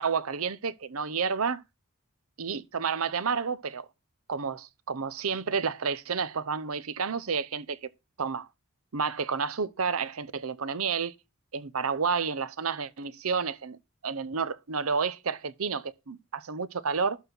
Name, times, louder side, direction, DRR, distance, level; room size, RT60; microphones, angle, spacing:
voice 1, 0.0-1.6 2.4-3.9 4.3-7.9 8.2-8.5 8.9-11.1 11.5-13.8 14.0-17.2, right 5 dB, 80° right, 0.8 m, -30 dB
12.0 x 4.2 x 6.0 m
head